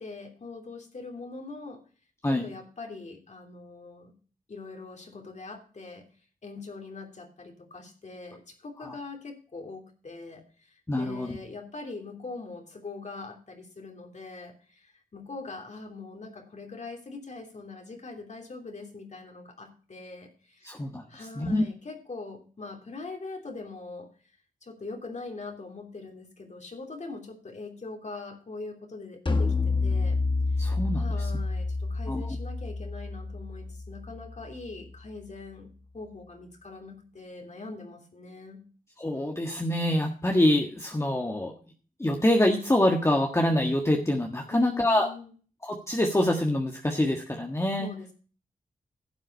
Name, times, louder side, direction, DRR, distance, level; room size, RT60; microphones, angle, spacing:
voice 1, 0.0-1.8 2.3-4.1 4.5-6.1 6.4-20.7 21.1-24.1 24.6-30.2 30.5-35.7 35.9-38.6 44.5-45.3 47.8-48.1, left 3 dB, 55° left, 3 dB, 3.0 m, -42 dB
voice 2, 10.9-11.4 20.6-21.6 30.6-31.3 32.1-32.4 39.0-41.5 42.0-45.1 45.6-47.9, left 1 dB, 20° left, 1 dB, 1.5 m, -25 dB
sound 1, 29.3-34.7, left 3 dB, 35° left, 1.6 m, -29 dB
11.5 x 7.6 x 5.3 m, 0.39 s
wide cardioid pair, 75°, 15 cm